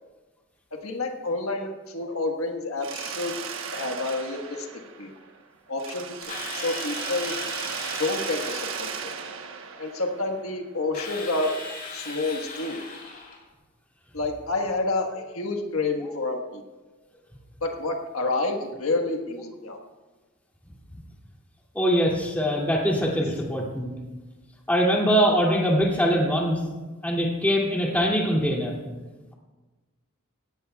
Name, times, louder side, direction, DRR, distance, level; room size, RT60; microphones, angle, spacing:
voice 1, 0.8-3.3 3.7-4.7 5.0-5.1 5.7-7.4 8.0-9.1 9.8-11.5 11.9-12.8 14.1-16.6 17.6-19.8, left 2 dB, 80° left, 3 dB, 1.5 m, -29 dB
Mechanisms, 2.8-5.4 5.8-10.6, right 6 dB, 65° right, 1.2 m, -35 dB
Drill, 6.3-9.0 10.9-13.4, left 3 dB, 40° left, 3.8 m, -38 dB
voice 2, 21.7-23.9 24.7-26.6 27.0-28.7, equal, 10° left, -3 dB, 2.5 m, -23 dB
17.5 x 17.0 x 2.4 m, 1.2 s
head